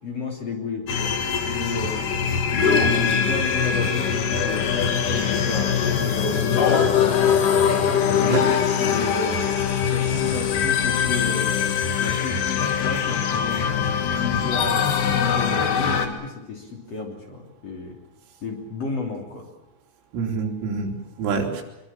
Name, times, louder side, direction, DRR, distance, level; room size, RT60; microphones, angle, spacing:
voice 1, 0.0-7.4 8.0-9.5 9.8-18.0 18.4-19.5, left 4 dB, 35° left, 1 dB, 3.5 m, -32 dB
sound 1, 0.9-16.1, left 7 dB, 55° left, 2.7 m, -22 dB
voice 2, 20.1-21.6, right 4 dB, 90° right, 1 dB, 5.8 m, -26 dB
24.5 x 22.5 x 7.4 m, 0.96 s
omnidirectional pair, 5.8 m